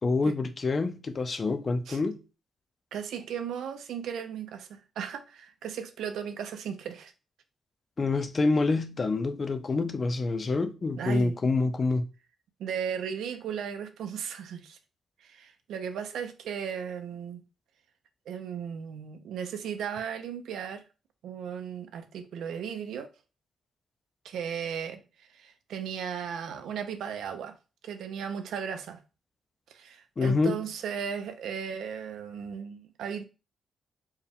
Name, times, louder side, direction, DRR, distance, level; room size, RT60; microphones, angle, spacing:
voice 1, 0.0-2.2 8.0-12.0 30.2-30.6, left 3 dB, 25° left, 0.4 m, -27 dB
voice 2, 2.9-7.1 11.0-11.4 12.6-14.8 15.2-17.4 18.3-20.8 21.2-23.1 24.2-27.5 27.8-29.0 29.7-33.2, right 7 dB, 85° right, 0.6 m, -36 dB
4.5 x 2.3 x 3.5 m
wide cardioid pair, 175°, 0 cm